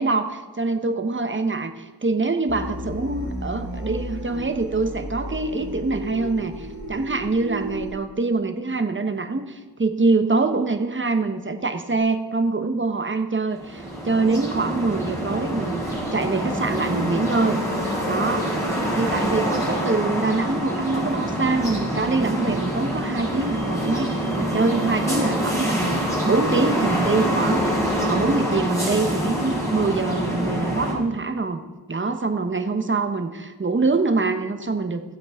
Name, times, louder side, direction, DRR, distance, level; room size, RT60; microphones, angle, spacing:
voice 1, 0.0-17.6 18.1-18.6 18.9-31.6 31.9-35.0, right 3 dB, 25° right, 7 dB, 0.9 m, -24 dB
sound 1, 2.5-7.9, equal, 65° left, 3.6 m, -33 dB
sound 2, 13.5-30.9, equal, 5° left, 4.1 m, -25 dB
16.0 x 7.9 x 3.5 m, 1.3 s
wide cardioid pair, 65°, 43 cm